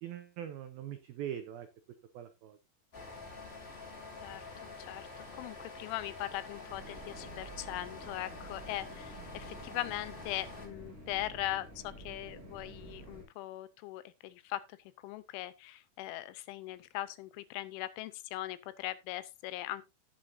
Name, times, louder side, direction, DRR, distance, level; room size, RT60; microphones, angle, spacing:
voice 1, 0.0-1.7 2.1-2.6, right 10 dB, 90° right, 2.1 m, -42 dB
sound 1, 2.9-10.7, left 3 dB, 25° left, 1.3 m, -47 dB
voice 2, 4.2-5.1 5.3-14.8 15.0-19.8, left 15 dB, 80° left, 3.2 m, -40 dB
sound 2, 6.7-13.2, right 2 dB, 35° right, 6.2 m, -50 dB
17.5 x 6.4 x 2.6 m
omnidirectional pair, 5.6 m